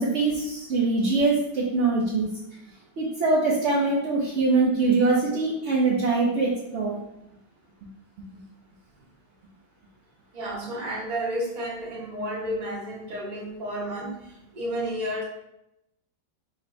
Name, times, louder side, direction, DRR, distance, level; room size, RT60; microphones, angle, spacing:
voice 1, 0.0-2.3 3.0-7.0, right 3 dB, 75° right, -4 dB, 0.6 m, -23 dB
voice 2, 10.3-14.2 14.5-15.2, equal, 30° right, -3 dB, 0.8 m, -31 dB
5.3 x 3.1 x 2.6 m, 0.83 s
omnidirectional pair, 2.0 m